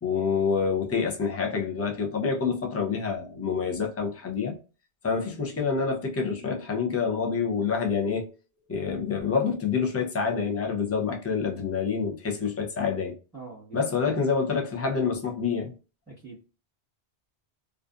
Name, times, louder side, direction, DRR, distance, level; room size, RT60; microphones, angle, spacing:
voice 1, 0.0-4.6 5.0-8.3 8.7-13.2 13.7-15.7, left 5 dB, 25° left, 0.4 m, -27 dB
voice 2, 13.3-14.0 16.1-16.4, right 4 dB, ahead, 1.1 m, -44 dB
2.5 x 2.3 x 2.4 m
omnidirectional pair, 1.1 m